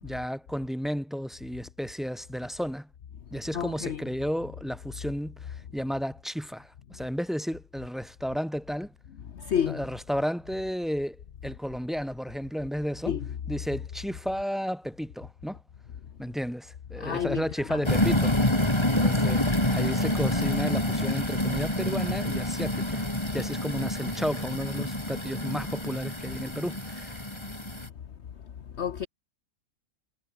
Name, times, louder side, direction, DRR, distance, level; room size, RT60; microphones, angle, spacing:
voice 1, 0.0-2.9 3.3-8.9 9.7-11.2 11.4-13.1 13.5-15.6 16.2-18.4 18.9-23.0 23.3-27.3, equal, ahead, 6.3 m, -33 dB
voice 2, 3.5-4.0 9.3-9.8 13.1-13.3 17.0-17.4 17.7-17.8 28.7-29.1, left 8 dB, 55° left, 1.2 m, -29 dB
sound 1, 17.8-27.9, left 1 dB, 20° left, 4.1 m, -27 dB
omnidirectional pair, 1.4 m